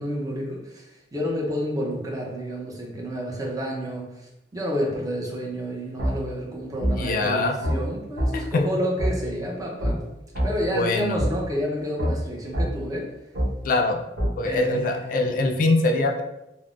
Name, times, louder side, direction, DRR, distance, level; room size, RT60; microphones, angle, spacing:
voice 1, 0.0-10.0 10.4-13.1 14.4-15.6, equal, 20° right, -2 dB, 0.6 m, -30 dB
sound 1, 6.0-6.1 6.8-6.9 7.6-7.8 8.2-8.3 9.0-9.1 9.8-9.9 10.3-10.5 11.2-11.3 12.0-12.1 12.5-12.7 13.3-13.5 14.2-14.3, equal, 75° right, 0.9 m, -23 dB
voice 2, 7.0-7.6 8.3-8.7 10.7-11.2 13.6-14.0 14.4-16.2, left 2 dB, 50° left, 4 dB, 0.3 m, -23 dB
3.4 x 2.0 x 2.4 m, 0.89 s
head